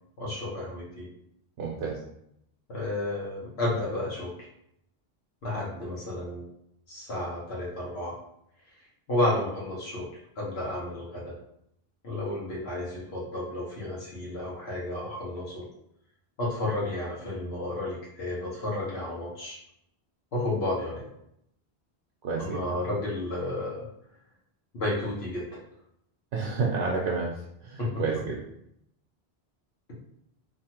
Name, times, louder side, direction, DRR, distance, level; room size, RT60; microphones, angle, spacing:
voice 1, 0.2-1.1 2.7-4.4 5.4-6.4 6.9-8.2 9.1-10.1 10.4-11.4 12.0-15.7 16.4-19.6 20.3-21.1 22.4-23.8 24.7-25.6 27.8-27.9, left 1 dB, 75° left, -5 dB, 1.2 m, -32 dB
voice 2, 1.6-2.0 22.2-22.6 26.3-27.3 27.6-28.4, right 4 dB, 85° right, -3 dB, 0.8 m, -29 dB
2.8 x 2.4 x 2.8 m, 0.75 s
omnidirectional pair, 1.1 m